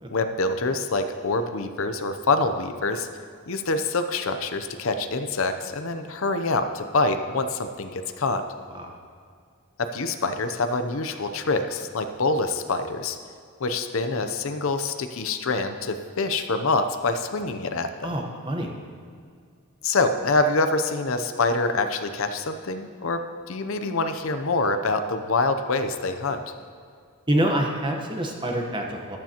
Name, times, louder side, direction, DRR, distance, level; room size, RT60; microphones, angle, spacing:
voice 1, 0.1-3.1 3.5-8.4 9.8-13.2 13.6-18.1 19.8-26.4, left 3 dB, 65° left, 8 dB, 0.6 m, -25 dB
voice 2, 18.0-18.7 27.3-29.2, right 1 dB, 20° right, 2 dB, 1.1 m, -26 dB
14.5 x 12.0 x 2.9 m, 2.2 s
head